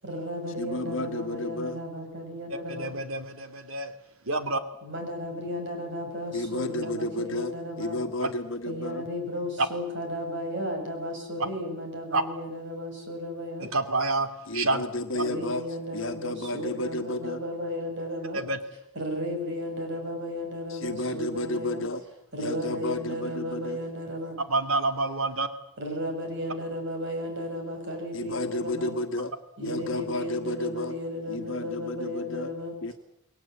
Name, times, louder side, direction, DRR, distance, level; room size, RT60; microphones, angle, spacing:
voice 1, 0.0-2.9 4.8-8.0 8.7-13.7 15.1-18.4 18.9-21.8 22.3-24.4 25.8-28.9 29.6-32.7, equal, 55° right, 4 dB, 7.9 m, -34 dB
voice 2, 0.6-1.8 6.3-9.0 14.5-15.6 15.9-17.4 20.7-22.0 22.4-23.8 28.1-29.3 29.6-30.9 31.3-32.5 32.8-32.9, left 1 dB, 60° left, 7 dB, 1.4 m, -32 dB
voice 3, 2.7-3.9 4.2-4.6 8.2-8.3 9.6-9.7 12.1-12.2 13.6-14.8 18.3-18.6 24.5-25.5, right 3 dB, 70° right, 9 dB, 2.7 m, -27 dB
29.5 x 21.0 x 8.6 m, 0.84 s
head